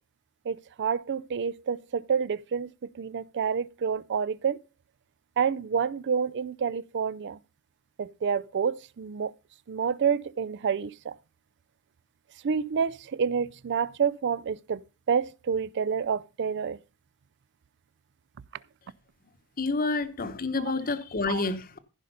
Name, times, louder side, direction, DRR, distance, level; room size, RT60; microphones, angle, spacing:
voice 1, 0.5-4.6 5.4-7.4 8.0-9.3 9.7-11.1 12.4-14.8 15.1-16.8 21.3-21.4, right 6 dB, 55° right, 0.4 m, -28 dB
voice 2, 19.6-21.8, left 3 dB, 40° left, 1.0 m, -29 dB
15.0 x 5.1 x 5.5 m
head